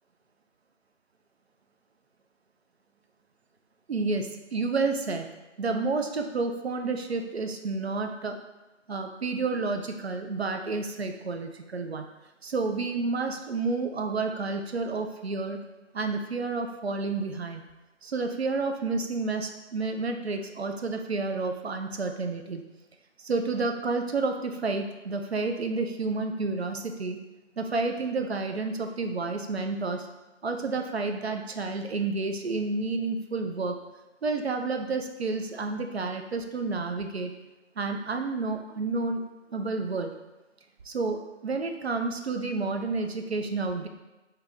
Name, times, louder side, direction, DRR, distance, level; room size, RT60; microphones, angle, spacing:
voice 1, 3.9-5.3 5.6-8.4 8.9-12.1 12.4-15.6 15.9-17.6 18.0-22.6 23.2-27.2 27.6-30.1 30.4-33.8 34.2-37.3 37.8-39.2 39.5-40.1 40.8-43.9, right 3 dB, 60° right, 5 dB, 0.5 m, -30 dB
3.6 x 2.8 x 3.6 m, 1.1 s
figure-of-eight pair, 150°, 37 cm